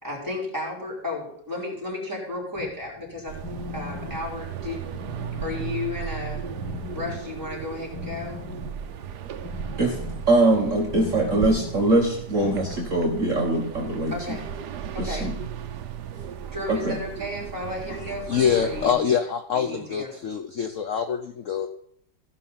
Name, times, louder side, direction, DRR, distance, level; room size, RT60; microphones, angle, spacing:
voice 1, 0.0-3.4 3.7-4.9 5.4-6.5 6.9-8.4 14.1-14.5 14.9-15.3 16.5-19.0 19.5-20.2, left 2 dB, 10° right, -3 dB, 4.6 m, -33 dB
sound 1, 2.5-12.8, left 5 dB, 20° left, 0.8 m, -40 dB
sound 2, 3.3-18.9, right 8 dB, 65° right, 1.3 m, -36 dB
voice 2, 10.3-14.1 15.0-15.4 16.7-17.0, right 2 dB, 45° right, -1 dB, 1.7 m, -22 dB
voice 3, 18.3-21.7, left 7 dB, 60° left, 9 dB, 0.8 m, -25 dB
15.5 x 5.7 x 5.6 m, 0.68 s
omnidirectional pair, 2.0 m